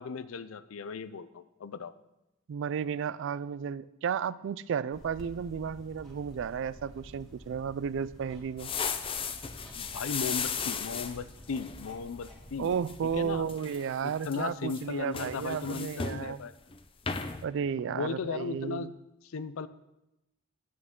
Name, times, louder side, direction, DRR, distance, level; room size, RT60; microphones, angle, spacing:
voice 1, 0.0-1.9 9.7-12.7 13.1-13.4 14.0-16.6 17.9-18.9 19.2-19.7, left 5 dB, 85° left, 14 dB, 0.5 m, -36 dB
voice 2, 2.5-8.7 12.6-16.4 17.4-18.9, right 7 dB, 65° right, 18 dB, 0.3 m, -33 dB
sound 1, 4.9-13.4, equal, ahead, 2.0 m, -51 dB
sound 2, 8.6-12.3 12.6-12.9 13.4-14.4 14.7-16.3 16.6-16.8 17.1-17.4, left 6 dB, 25° left, 0.5 m, -36 dB
9.5 x 8.3 x 3.7 m, 0.89 s
head